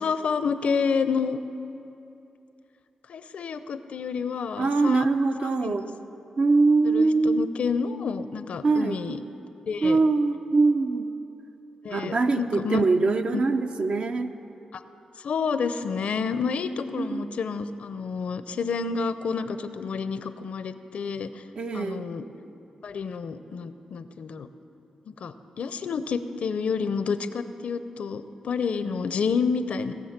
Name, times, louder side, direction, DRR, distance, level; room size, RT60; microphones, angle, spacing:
voice 1, 0.0-1.4 3.1-5.1 5.4-5.8 6.8-9.2 9.7-10.0 11.8-12.8 13.3-13.4 14.7-14.8 15.2-21.4 21.7-22.2 22.8-24.5 25.1-29.9, left 5 dB, 75° left, 11 dB, 0.6 m, -29 dB
voice 2, 4.6-5.8 6.4-7.5 8.6-9.0 9.8-11.1 11.9-14.3 17.0-17.2 21.6-22.0, right 3 dB, 60° right, 6 dB, 0.8 m, -23 dB
18.5 x 7.1 x 5.9 m, 2.9 s
cardioid pair, 55°, 2 cm